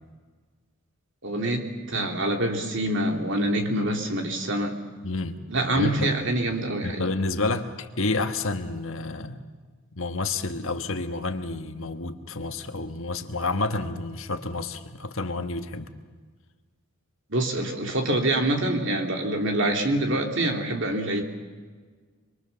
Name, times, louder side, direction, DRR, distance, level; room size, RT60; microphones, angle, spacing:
voice 1, 1.2-4.8 5.5-7.0 17.3-21.2, right 1 dB, 55° right, 3 dB, 2.9 m, -25 dB
voice 2, 5.0-5.4 5.8-6.1 6.8-9.4 10.0-15.9, left 3 dB, 60° left, 7 dB, 1.5 m, -29 dB
26.0 x 23.0 x 7.0 m, 1.5 s
head